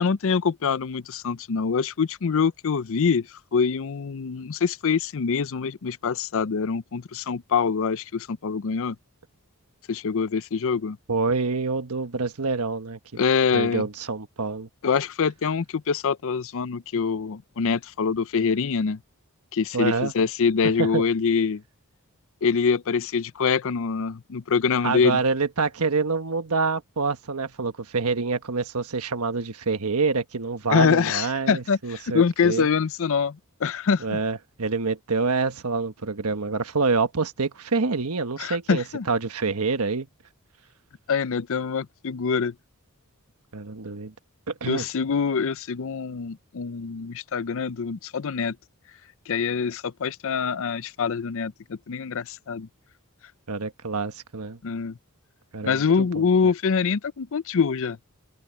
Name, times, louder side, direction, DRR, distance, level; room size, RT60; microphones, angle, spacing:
voice 1, 0.0-9.0 9.9-11.0 13.2-13.9 14.8-19.0 19.5-21.6 22.4-25.2 30.7-34.2 38.4-39.1 41.1-42.5 44.7-48.6 49.3-52.7 54.6-55.0 55.6-58.0, left 5 dB, 60° left, 0.5 m, -25 dB
voice 2, 11.1-13.0 13.5-14.7 19.7-20.1 20.8-21.0 24.8-32.7 34.0-40.1 43.5-44.1 44.5-44.9 53.5-54.6 55.5-55.8 56.1-56.2, right 4 dB, 80° right, 1.3 m, -26 dB
open air
head